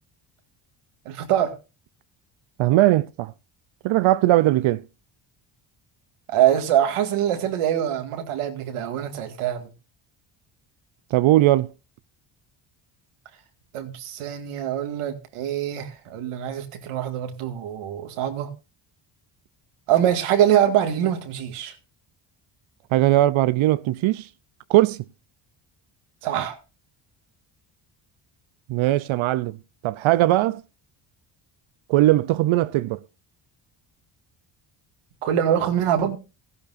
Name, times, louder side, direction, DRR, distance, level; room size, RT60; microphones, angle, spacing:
voice 1, 1.1-1.6 6.3-9.7 13.7-18.5 19.9-21.8 26.2-26.6 35.2-36.2, right 10 dB, 85° right, 2.0 m, -24 dB
voice 2, 2.6-3.3 3.8-4.8 11.1-11.7 22.9-24.3 24.7-25.0 28.7-29.6 29.8-30.6 31.9-33.0, right 16 dB, 70° right, 0.6 m, -19 dB
15.0 x 12.0 x 2.5 m
cardioid pair, 90°, 50 cm